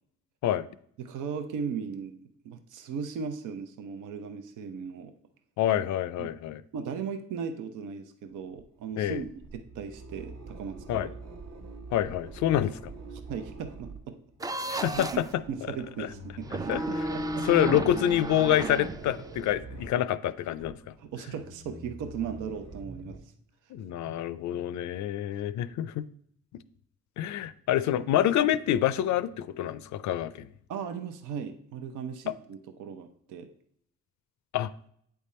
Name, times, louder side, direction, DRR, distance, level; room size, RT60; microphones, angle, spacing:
voice 1, 1.0-2.1 2.4-5.1 6.2-6.3 6.7-11.1 12.5-12.6 13.3-14.2 14.9-15.0 15.5-17.5 21.0-23.2 24.0-24.2 30.7-33.5, right 6 dB, 85° right, 7 dB, 0.7 m, -37 dB
voice 2, 5.6-6.6 9.0-9.2 10.9-11.1 11.9-12.9 14.7-15.4 16.0-16.1 16.7-17.0 17.4-20.8 23.7-26.1 27.2-30.5 32.3-32.4 34.5-34.7, left 11 dB, 70° left, 16 dB, 0.5 m, -27 dB
sound 1, 8.3-23.2, right 2 dB, 55° right, 1.0 m, -46 dB
sound 2, 14.4-15.3 16.4-19.5, right 2 dB, 15° right, 0.3 m, -33 dB
8.6 x 3.5 x 4.2 m, 0.67 s
cardioid pair, 90°, 30 cm